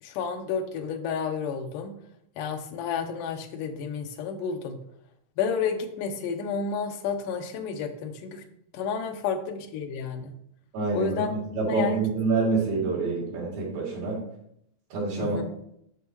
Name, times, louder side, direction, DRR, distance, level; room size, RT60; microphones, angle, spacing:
voice 1, 0.0-1.9 2.4-4.8 5.4-8.4 8.7-10.3 10.9-11.3 11.7-12.0 15.2-15.5, left 6 dB, 75° left, 4 dB, 2.4 m, -31 dB
voice 2, 10.7-14.2 14.9-15.4, right 3 dB, 85° right, -4 dB, 4.6 m, -27 dB
12.0 x 6.2 x 3.1 m, 0.73 s
omnidirectional pair, 4.1 m